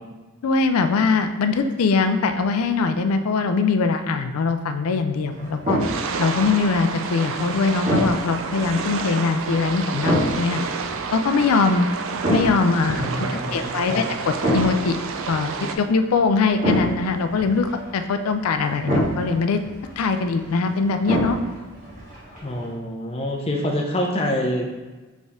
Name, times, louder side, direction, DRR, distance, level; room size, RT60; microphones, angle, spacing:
voice 1, 0.4-5.8 6.2-10.6 11.1-11.9 12.3-13.0 13.5-15.0 15.3-19.6 20.0-21.4, left 4 dB, 80° left, 8 dB, 0.4 m, -22 dB
sound 1, 5.3-22.7, right 1 dB, 40° right, 1.5 m, -29 dB
sound 2, 5.8-15.8, right 5 dB, 65° right, 0.3 m, -30 dB
voice 2, 12.9-14.1 22.4-24.8, left 1 dB, 25° left, 0 dB, 0.5 m, -26 dB
4.3 x 3.5 x 3.5 m, 1.2 s
head